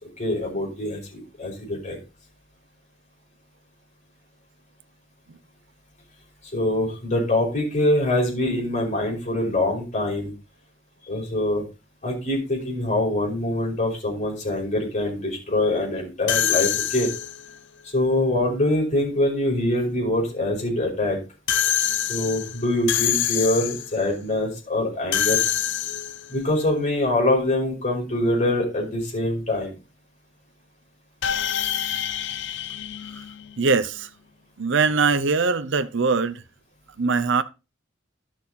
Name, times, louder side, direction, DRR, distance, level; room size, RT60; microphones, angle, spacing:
voice 1, 0.2-2.0 6.5-10.3 11.1-11.6 12.0-17.1 17.8-21.2 22.1-25.4 26.3-29.7, left 1 dB, 40° left, 5.2 m, -24 dB
sound 1, 16.3-17.5 21.5-24.0 25.1-26.4 31.2-33.8, left 10 dB, 65° left, 0.7 m, -26 dB
voice 2, 33.6-34.1 34.6-36.4 37.0-37.4, right 4 dB, 65° right, 0.7 m, -21 dB
11.5 x 6.3 x 4.2 m
head